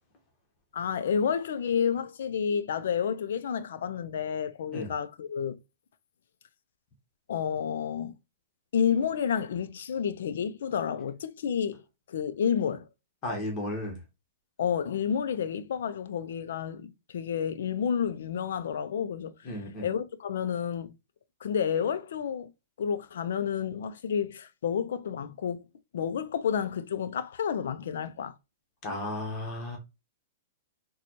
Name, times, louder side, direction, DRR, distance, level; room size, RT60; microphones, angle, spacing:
voice 1, 0.7-5.6 7.3-8.2 8.7-11.8 12.1-12.9 14.6-19.5 19.8-20.9 21.4-22.5 22.8-25.6 25.9-28.3, left 7 dB, 75° left, 0.4 m, -30 dB
voice 2, 13.2-14.0 19.4-19.9 28.8-29.8, left 1 dB, 35° left, 1.2 m, -34 dB
4.0 x 2.3 x 2.9 m
hypercardioid pair, 130°, 0 cm